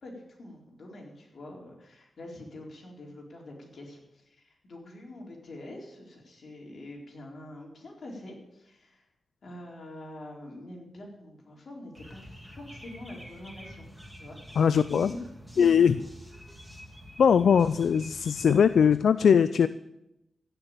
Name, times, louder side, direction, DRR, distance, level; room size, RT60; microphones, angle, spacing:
voice 1, 0.0-9.1 9.4-13.8 14.2-14.6 14.9-15.2 15.5-15.9, left 1 dB, 60° left, -1 dB, 4.2 m, -45 dB
sound 1, 12.0-19.0, equal, 5° left, 2.7 m, -47 dB
voice 2, 14.6-15.1 15.6-16.0 17.2-19.7, left 7 dB, 80° left, 14 dB, 0.4 m, -21 dB
16.0 x 6.9 x 8.9 m, 0.90 s
cardioid pair, 85°, 0 cm